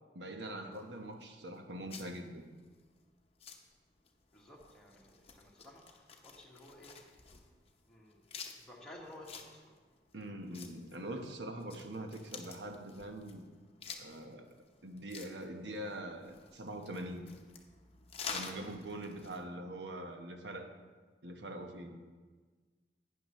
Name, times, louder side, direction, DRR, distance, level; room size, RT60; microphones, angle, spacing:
voice 1, 0.1-2.5 10.1-13.4 14.0-14.5 14.8-17.2 18.3-20.7 21.2-22.0, right 1 dB, 80° right, 5 dB, 1.0 m, -43 dB
sound 1, 0.7-19.4, left 5 dB, 35° left, 0.8 m, -50 dB
voice 2, 4.3-6.9 7.9-8.2 8.5-9.8, left 1 dB, 5° left, -4 dB, 1.5 m, -54 dB
12.0 x 9.3 x 3.1 m, 1.4 s
head